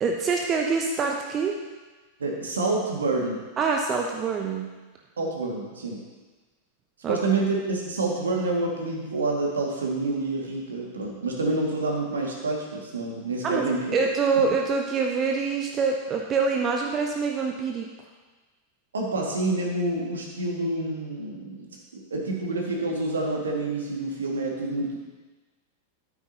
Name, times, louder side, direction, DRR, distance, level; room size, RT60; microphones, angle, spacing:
voice 1, 0.0-1.6 3.6-4.7 7.0-7.2 13.4-17.9, right 5 dB, 25° right, 1 dB, 0.9 m, -25 dB
voice 2, 2.2-3.4 5.2-6.0 7.1-13.9 18.9-25.0, right 2 dB, 70° right, -1 dB, 2.2 m, -28 dB
13.0 x 9.3 x 3.0 m, 1.3 s
figure-of-eight pair, 90°, 0 cm